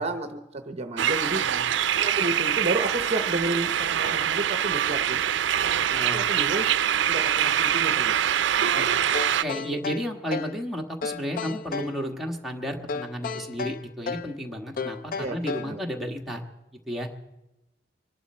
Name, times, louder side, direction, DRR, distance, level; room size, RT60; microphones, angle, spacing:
voice 1, 0.0-1.4 1.9-5.3 5.6-5.7 6.1-6.6 7.1-8.1 15.2-15.8, right 2 dB, 35° right, 7 dB, 0.8 m, -31 dB
sound 1, 1.0-9.4, right 9 dB, 75° right, 0.4 m, -24 dB
voice 2, 5.9-6.2 8.7-8.9 9.4-16.4 16.9-17.1, equal, ahead, -1 dB, 1.4 m, -32 dB
sound 2, 9.1-10.6 11.0-12.0 12.9-14.3 14.8-15.8, left 5 dB, 50° left, 0.4 m, -33 dB
24.5 x 11.0 x 4.3 m, 0.98 s
head